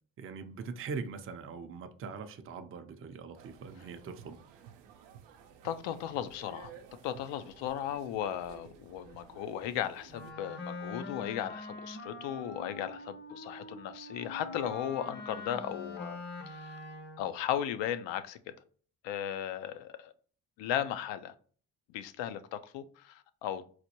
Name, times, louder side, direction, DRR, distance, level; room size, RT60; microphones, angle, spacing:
voice 1, 0.2-4.6, right 5 dB, 30° right, 0.5 m, -42 dB
sound 1, 3.3-10.3, right 8 dB, 85° right, 0.6 m, -54 dB
voice 2, 5.6-6.7 7.0-16.2 16.5-16.8 17.2-18.4 19.0-20.1 20.6-21.3 21.9-23.7, left 10 dB, 85° left, 0.6 m, -36 dB
Wind instrument woodwind instrument, 10.1-17.3, left 2 dB, 25° left, 0.6 m, -44 dB
4.1 x 2.2 x 2.8 m
cardioid pair, 85°, 43 cm